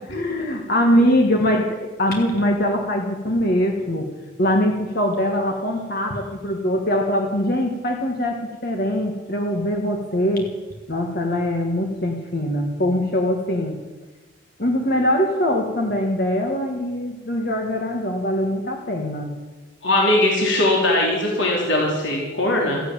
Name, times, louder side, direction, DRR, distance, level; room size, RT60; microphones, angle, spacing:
voice 1, 0.1-4.1 4.4-10.5 10.9-13.8 14.6-19.4, equal, 50° left, 2 dB, 1.7 m, -22 dB
voice 2, 19.8-22.8, left 1 dB, 65° left, -2 dB, 3.6 m, -20 dB
14.0 x 11.0 x 8.9 m, 1.2 s
head